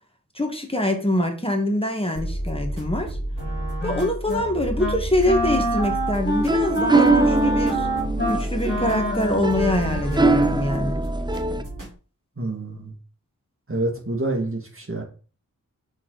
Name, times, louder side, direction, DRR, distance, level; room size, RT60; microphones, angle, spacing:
voice 1, 0.3-3.2 3.8-7.9 8.3-11.0, left 1 dB, 15° left, 3 dB, 1.5 m, -24 dB
sound 1, 2.2-11.9, right 1 dB, 65° right, 3.5 m, -30 dB
Wind instrument woodwind instrument, 3.3-4.5 4.8-5.0 5.3-10.5, equal, 35° left, 2.0 m, -26 dB
sound 2, 6.2-11.6, right 2 dB, 15° right, 0.5 m, -23 dB
voice 2, 12.4-12.9 13.7-15.0, right 2 dB, 40° right, 0 dB, 2.1 m, -27 dB
6.1 x 4.4 x 3.9 m, 0.37 s
wide cardioid pair, 70°, 34 cm